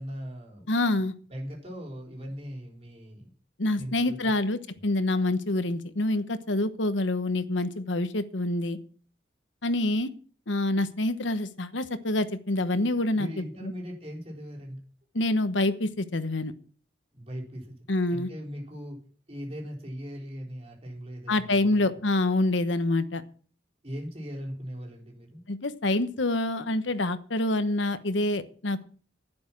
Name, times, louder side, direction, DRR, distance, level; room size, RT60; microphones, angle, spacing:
voice 1, 0.0-0.7 1.3-3.3 3.8-4.2 13.1-14.8 17.1-17.8 18.1-19.0 19.3-21.9 23.8-25.4, equal, 30° right, -1 dB, 4.2 m, -39 dB
voice 2, 0.7-1.1 3.6-8.8 9.6-10.1 10.5-13.7 15.1-16.5 17.9-18.3 21.3-23.2 25.5-28.8, left 2 dB, 80° left, 12 dB, 1.1 m, -26 dB
11.5 x 10.5 x 6.0 m, 0.43 s
head